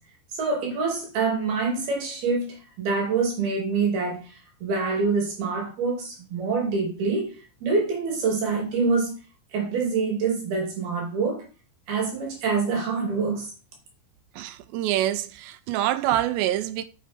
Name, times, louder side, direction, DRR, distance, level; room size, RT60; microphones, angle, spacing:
voice 1, 0.3-9.1 9.5-11.4 11.9-13.5, right 4 dB, 60° right, 4.4 m, -26 dB
voice 2, 14.4-16.8, right 13 dB, 80° right, 2.7 m, -26 dB
9.5 x 8.1 x 4.4 m
omnidirectional pair, 5.3 m